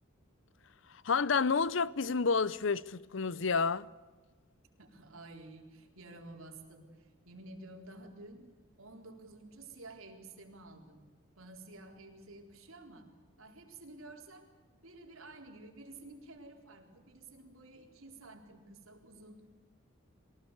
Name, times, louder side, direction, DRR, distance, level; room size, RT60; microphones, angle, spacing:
voice 1, 0.9-3.9, left 5 dB, 65° left, 0.7 m, -30 dB
voice 2, 4.8-8.5 8.8-14.5 14.8-19.5, right 2 dB, 80° right, 4.1 m, -52 dB
23.0 x 18.5 x 8.1 m
head